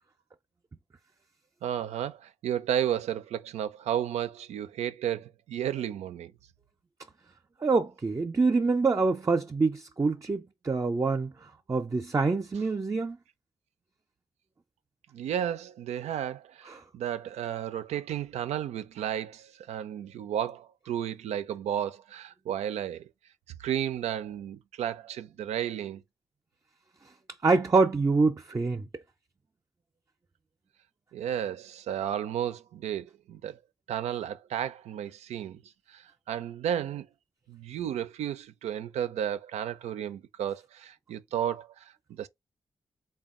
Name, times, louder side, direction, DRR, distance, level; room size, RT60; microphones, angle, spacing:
voice 1, 1.6-6.3 15.1-23.1 23.6-26.0 31.1-33.6 33.9-35.6 35.9-37.1 37.5-42.3, right 10 dB, 85° right, 0.4 m, -33 dB
voice 2, 7.6-13.2 16.7-16.8 27.4-28.9, right 3 dB, 30° right, 0.5 m, -26 dB
3.5 x 2.2 x 3.6 m
supercardioid pair, 50°, 11 cm